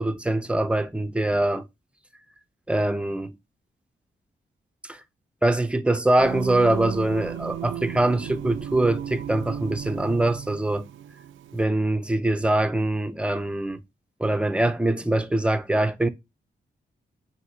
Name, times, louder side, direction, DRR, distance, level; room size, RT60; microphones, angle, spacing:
voice 1, 0.0-1.7 2.7-3.3 4.8-5.0 5.4-10.8 11.5-13.8 14.2-16.1, right 1 dB, 5° right, 0.5 m, -23 dB
Singing, 6.2-11.6, right 10 dB, 85° right, 0.4 m, -35 dB
5.7 x 2.7 x 2.7 m
cardioid pair, 55°, 20 cm